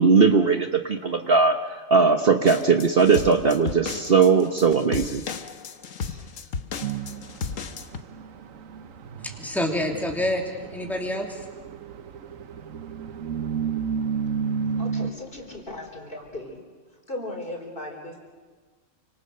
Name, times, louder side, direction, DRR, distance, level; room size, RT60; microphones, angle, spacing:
voice 1, 0.0-1.6 1.9-5.2, right 5 dB, 45° right, 1.2 m, -19 dB
sound 1, 2.5-8.0, left 5 dB, 75° left, 1.6 m, -34 dB
sound 2, 6.8-15.1, right 6 dB, 75° right, 1.3 m, -32 dB
voice 2, 9.2-11.4, left 1 dB, ahead, 2.8 m, -28 dB
voice 3, 14.8-16.6 17.1-18.2, left 1 dB, 40° left, 4.6 m, -37 dB
29.0 x 25.5 x 6.7 m
omnidirectional pair, 1.4 m